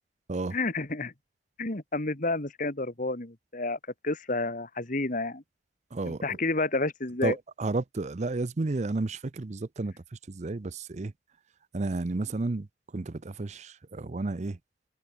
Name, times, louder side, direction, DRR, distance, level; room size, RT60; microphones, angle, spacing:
voice 1, 0.5-1.1 1.6-5.4 6.0-7.4, left 2 dB, 45° left, 2.0 m, -30 dB
voice 2, 5.9-6.4 7.2-9.9 10.3-11.1 11.7-12.7 12.9-14.6, right 3 dB, 40° right, 0.6 m, -32 dB
head